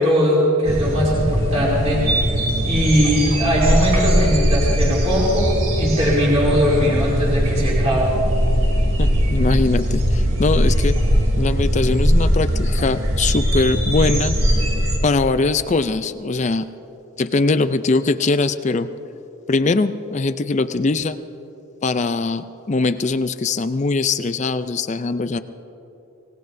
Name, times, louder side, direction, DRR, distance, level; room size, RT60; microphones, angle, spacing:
voice 1, 0.0-8.1, equal, 30° right, -6 dB, 2.9 m, -20 dB
sound 1, 0.7-15.0, equal, 70° right, 2.8 m, -20 dB
voice 2, 9.0-11.0 11.4-14.3 15.0-16.6 17.2-18.9 19.5-21.2 21.8-25.4, left 3 dB, 35° left, 11 dB, 0.4 m, -21 dB
26.5 x 18.0 x 2.7 m, 3.0 s
head